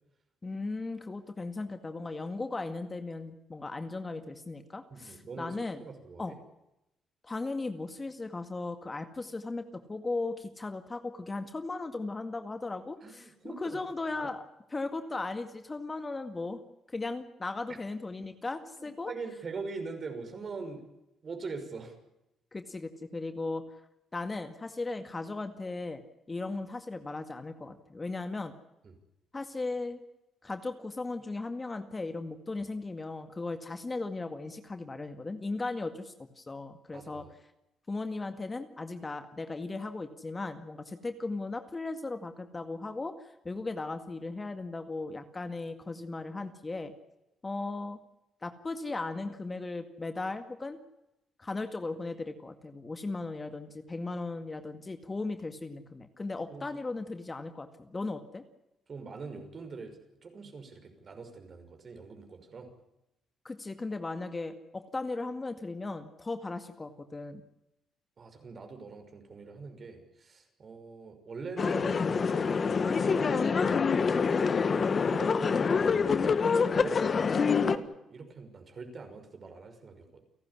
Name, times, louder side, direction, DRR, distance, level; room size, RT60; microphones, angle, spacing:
voice 1, 0.4-5.8 6.2-6.3 7.2-14.4 14.7-16.6 16.9-19.1 22.5-23.7 24.1-26.0 26.3-28.5 29.3-30.0 30.4-37.3 37.9-46.9 47.4-48.0 48.4-50.8 51.4-58.4 63.4-67.4, left 3 dB, 25° left, 8 dB, 2.0 m, -37 dB
voice 2, 4.9-6.4 13.0-13.8 14.2-14.3 18.8-20.9 21.2-22.0 28.8-28.9 36.9-37.3 56.5-56.6 58.9-62.7 68.2-73.8 74.1-76.3 76.6-80.2, right 4 dB, 45° right, 6 dB, 5.9 m, -43 dB
sound 1, 71.6-77.8, left 5 dB, 40° left, 1.5 m, -26 dB
30.0 x 12.0 x 10.0 m, 0.91 s
cardioid pair, 90°, 0 cm